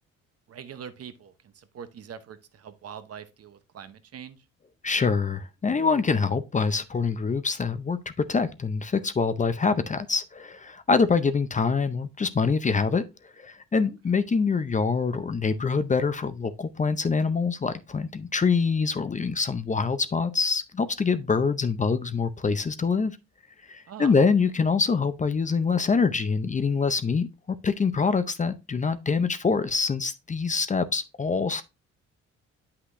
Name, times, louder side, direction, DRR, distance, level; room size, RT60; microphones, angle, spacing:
voice 1, 0.5-4.4 23.9-24.1, right 8 dB, 50° right, 0.9 m, -43 dB
voice 2, 4.8-23.2 23.7-31.6, left 5 dB, 25° left, 0.6 m, -25 dB
8.0 x 5.8 x 2.6 m
cardioid pair, 90°, 30 cm